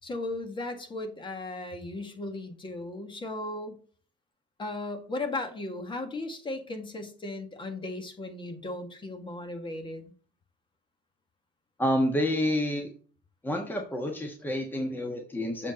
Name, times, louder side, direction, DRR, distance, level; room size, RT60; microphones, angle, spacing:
voice 1, 0.0-3.8 4.6-10.0, left 2 dB, 30° left, 7 dB, 1.9 m, -36 dB
voice 2, 11.8-12.9 13.4-15.7, left 1 dB, 10° left, 3 dB, 1.4 m, -28 dB
7.3 x 5.1 x 4.2 m, 0.40 s
cardioid pair, 110°, 17 cm